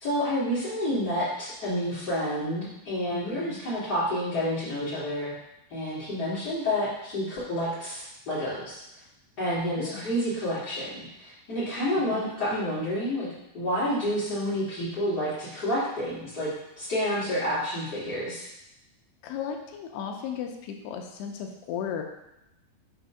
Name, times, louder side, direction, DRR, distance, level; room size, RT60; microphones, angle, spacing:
voice 1, 0.0-5.3 5.7-8.8 9.4-10.9 11.2-13.3 13.5-16.5 16.8-18.5, equal, 55° left, -11 dB, 1.0 m, -29 dB
voice 2, 3.1-3.6 9.8-10.1 12.1-12.2 19.2-22.0, left 7 dB, 85° left, 3 dB, 2.7 m, -35 dB
6.8 x 2.7 x 5.5 m, 0.88 s
omnidirectional pair, 4.8 m